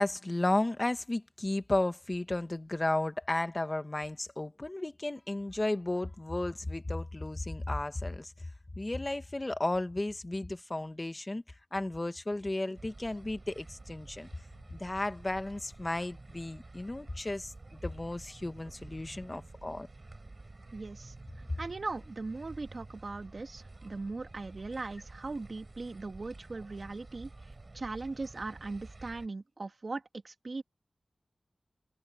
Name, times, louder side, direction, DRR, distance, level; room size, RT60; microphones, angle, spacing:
voice 1, 0.0-8.3 8.8-11.4 11.7-14.3 14.7-19.9, left 2 dB, 30° left, 1.6 m, -33 dB
sound 1, 12.7-29.3, right 2 dB, 45° right, 6.9 m, -50 dB
voice 2, 20.7-21.1 21.6-27.3 27.7-30.6, right 3 dB, 60° right, 2.5 m, -39 dB
wide cardioid pair, 55°, 0 cm